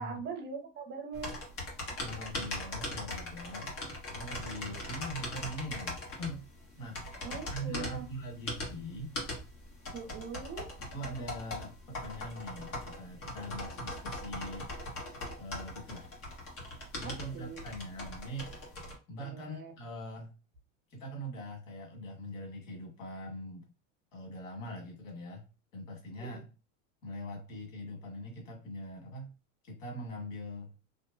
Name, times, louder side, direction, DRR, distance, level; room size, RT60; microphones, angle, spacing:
voice 1, 0.0-1.3 4.7-4.8 7.2-8.1 9.9-10.7 17.0-17.6 19.2-19.7 26.2-26.4, right 6 dB, 30° right, 3 dB, 1.0 m, -42 dB
sound 1, 1.1-18.9, left 1 dB, 35° left, 1.4 m, -40 dB
voice 2, 2.0-3.7 4.1-6.5 6.8-7.0 7.5-9.1 10.9-14.7 15.4-16.1 17.0-18.5 19.1-20.3 20.9-23.7 24.1-25.4 25.7-26.4 27.0-29.3 29.6-30.7, equal, 80° left, 1 dB, 1.5 m, -42 dB
2.8 x 2.6 x 2.5 m, 0.31 s
supercardioid pair, 110°, 38 cm